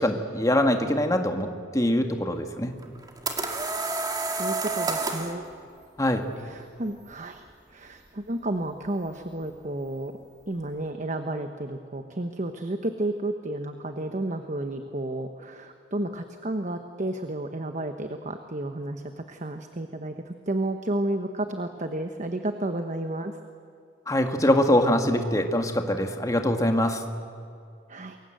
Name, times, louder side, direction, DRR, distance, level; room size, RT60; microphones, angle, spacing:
voice 1, 0.0-2.7 6.0-6.3 24.1-27.0, left 1 dB, 20° left, 5 dB, 1.8 m, -23 dB
sound 1, 2.8-5.4, right 3 dB, 20° right, 2.3 m, -29 dB
voice 2, 4.3-5.4 6.4-7.4 7.7-10.1 10.5-23.3 27.9-28.2, right 1 dB, 40° right, 7 dB, 1.1 m, -32 dB
28.0 x 22.5 x 7.9 m, 2.4 s
head